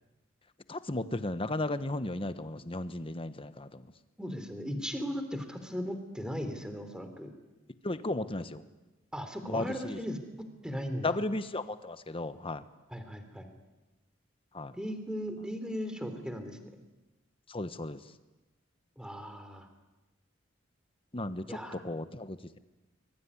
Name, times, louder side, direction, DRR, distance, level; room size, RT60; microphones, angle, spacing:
voice 1, 0.7-3.8 7.8-8.6 9.5-10.0 11.0-12.6 14.5-14.7 17.5-18.0 21.1-22.6, left 2 dB, 25° left, 12 dB, 1.2 m, -35 dB
voice 2, 4.2-7.3 9.1-10.2 10.6-11.2 12.9-13.5 14.7-16.8 19.0-19.7 21.5-21.8, equal, 5° right, 7 dB, 3.3 m, -37 dB
25.0 x 22.5 x 9.8 m, 1.1 s
head